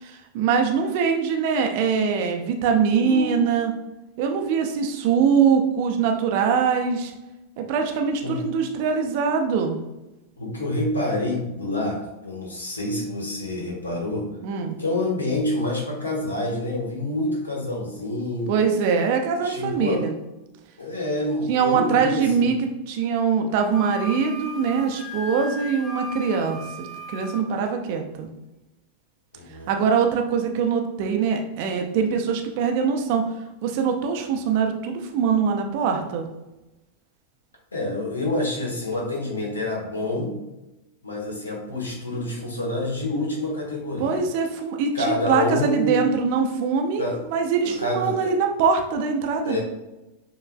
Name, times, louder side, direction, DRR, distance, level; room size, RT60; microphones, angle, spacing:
voice 1, 0.0-3.7 4.2-7.1 7.6-9.8 14.4-14.8 18.5-20.1 21.5-22.6 22.9-28.3 29.7-33.3 33.6-36.3 44.0-47.0 47.3-49.6, right 6 dB, 50° right, 4 dB, 0.6 m, -23 dB
voice 2, 3.0-3.4 8.2-8.4 10.4-14.3 14.8-18.5 19.4-20.0 20.8-22.5 29.3-29.9 37.7-40.4 41.0-44.2 44.9-46.1 47.0-47.2 47.6-48.3 49.4-49.6, left 1 dB, 75° left, -1 dB, 1.4 m, -27 dB
Wind instrument woodwind instrument, 23.7-27.5, left 2 dB, 5° left, 0.7 m, -37 dB
6.9 x 3.2 x 2.3 m, 0.99 s
figure-of-eight pair, 90°, 0 cm